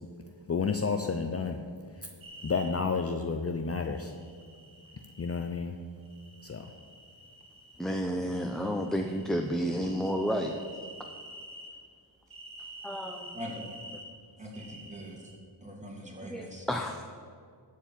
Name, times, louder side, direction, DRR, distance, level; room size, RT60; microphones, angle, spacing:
voice 1, 0.5-1.6 1.9-2.1 2.4-4.1 5.2-5.8 6.4-6.7, left 5 dB, 30° left, 5 dB, 0.7 m, -31 dB
sound 1, 2.2-2.7 3.8-5.4 6.0-8.0 8.3-11.7 12.3-14.1 14.5-15.4, right 1 dB, 85° right, 2.2 m, -49 dB
voice 2, 7.8-10.5 12.8-13.3 16.3-17.0, equal, ahead, 3 dB, 0.7 m, -31 dB
voice 3, 13.3-13.7 14.4-15.3 15.6-16.7, equal, 15° right, -2 dB, 2.9 m, -42 dB
14.0 x 4.7 x 8.9 m, 2.1 s
wide cardioid pair, 90°, 45 cm